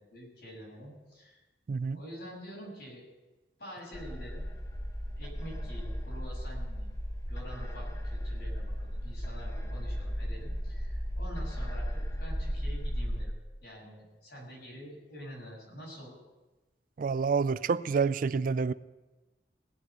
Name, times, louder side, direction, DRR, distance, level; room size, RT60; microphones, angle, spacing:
voice 1, 0.0-1.4 1.9-3.0 3.6-4.4 5.2-6.9 7.3-11.8 12.2-13.3 13.6-16.2, equal, 60° left, 6.8 m, -47 dB
sound 1, 3.9-13.2, equal, 20° left, 1.2 m, -35 dB
voice 2, 17.0-18.7, right 5 dB, 50° right, 0.4 m, -28 dB
17.5 x 6.6 x 9.2 m
head